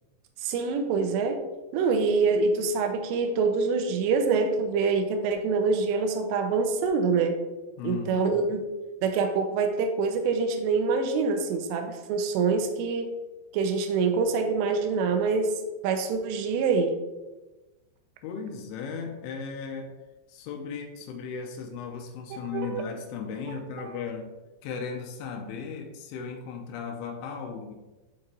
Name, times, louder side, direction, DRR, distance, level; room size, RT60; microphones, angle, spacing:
voice 1, 0.4-1.4 1.7-7.4 7.8-8.6 9.0-13.1 13.5-17.0 22.3-22.8 23.5-23.9, right 4 dB, 80° right, 6 dB, 2.7 m, -25 dB
voice 2, 7.8-8.5 18.2-19.9 20.3-24.3 24.6-27.7, left 6 dB, 90° left, 2 dB, 3.3 m, -36 dB
11.0 x 4.3 x 2.6 m, 1.1 s
omnidirectional pair, 5.3 m